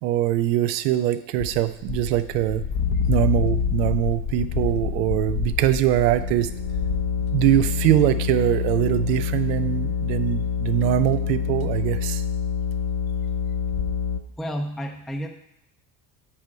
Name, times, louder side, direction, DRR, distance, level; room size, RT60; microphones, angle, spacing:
voice 1, 0.0-2.6 3.1-6.5 7.3-12.2, right 13 dB, 85° right, 12 dB, 0.7 m, -22 dB
sound 1, 1.4-7.9 8.6-9.0 9.3-9.4 10.2-10.3 11.2-11.3 11.6-11.7 12.3-12.6 12.8-12.9 13.1-13.2 13.5-13.9, left 7 dB, 45° left, 0.8 m, -30 dB
sound 2, 2.8-4.0 4.4-14.2, left 7 dB, 75° left, 0.8 m, -27 dB
voice 2, 14.4-15.3, equal, ahead, 2 dB, 0.6 m, -30 dB
8.6 x 3.1 x 6.4 m, 0.81 s
supercardioid pair, 80°, 48 cm